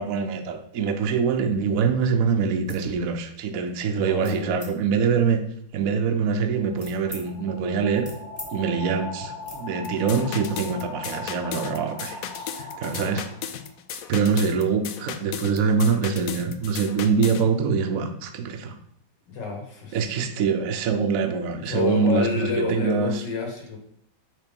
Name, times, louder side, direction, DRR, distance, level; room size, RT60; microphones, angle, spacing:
voice 1, 0.0-5.4 5.7-8.1 8.5-12.2 12.6-13.2 14.1-18.7 19.9-23.1, right 5 dB, 60° right, 6 dB, 1.0 m, -24 dB
sound 1, 2.7-2.9 3.3-3.7 4.2-4.7 5.4-7.2 7.6-8.5 8.8-9.0 9.4-9.6, left 1 dB, 15° left, 1.7 m, -44 dB
voice 2, 4.0-4.6 13.0-13.1 19.3-20.2 21.5-23.8, left 4 dB, 65° left, 0 dB, 2.3 m, -29 dB
sound 2, 6.1-13.8, left 4 dB, 40° left, 1.7 m, -39 dB
sound 3, 9.8-17.5, left 9 dB, 90° left, 0.7 m, -36 dB
6.1 x 3.7 x 5.2 m, 0.67 s
omnidirectional pair, 2.1 m